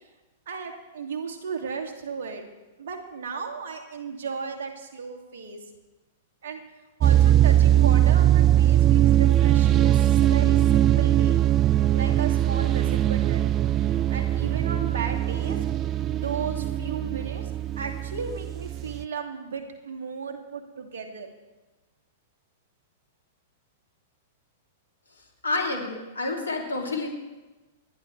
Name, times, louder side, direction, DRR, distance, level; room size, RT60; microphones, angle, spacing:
voice 1, 0.5-2.4 2.8-5.6 6.4-6.6 7.0-11.4 11.9-13.5 13.8-15.6 16.1-21.3, right 5 dB, 70° right, 3 dB, 2.5 m, -35 dB
sound 1, 7.0-19.0, right 12 dB, 35° right, 0.4 m, -21 dB
voice 2, 25.4-27.1, left 2 dB, 90° left, 0 dB, 3.3 m, -28 dB
28.0 x 11.5 x 3.4 m, 1.1 s
hypercardioid pair, 105°, 0 cm